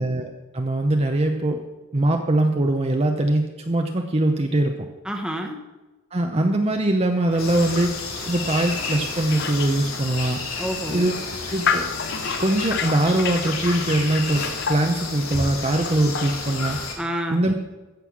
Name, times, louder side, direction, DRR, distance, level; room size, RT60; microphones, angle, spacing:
voice 1, 0.0-1.6 1.9-4.7 6.1-7.9 8.3-10.4 10.9-11.1 11.5-11.9 12.4-14.4 14.7-16.8 17.3-17.5, right 1 dB, 30° right, 4 dB, 0.8 m, -22 dB
voice 2, 5.0-5.6 10.6-11.1 17.0-17.5, equal, 5° right, 2 dB, 1.2 m, -29 dB
sound 1, 7.3-16.7, left 6 dB, 55° left, 0.9 m, -32 dB
sound 2, 7.4-16.9, left 3 dB, 90° left, 2.4 m, -31 dB
14.5 x 5.5 x 7.4 m, 1.1 s
head